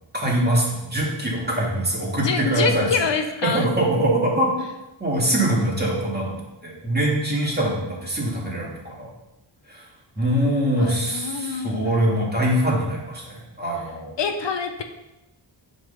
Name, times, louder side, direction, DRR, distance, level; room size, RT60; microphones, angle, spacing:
voice 1, 0.1-2.9 3.4-4.5 5.0-6.4 6.6-9.1 9.7-9.9 10.2-14.1, right 1 dB, 20° right, -4 dB, 2.0 m, -23 dB
voice 2, 2.2-3.7 10.8-12.1 14.2-14.8, left 5 dB, 65° left, 6 dB, 0.7 m, -26 dB
7.8 x 3.9 x 5.5 m, 0.96 s
wide cardioid pair, 105°, 48 cm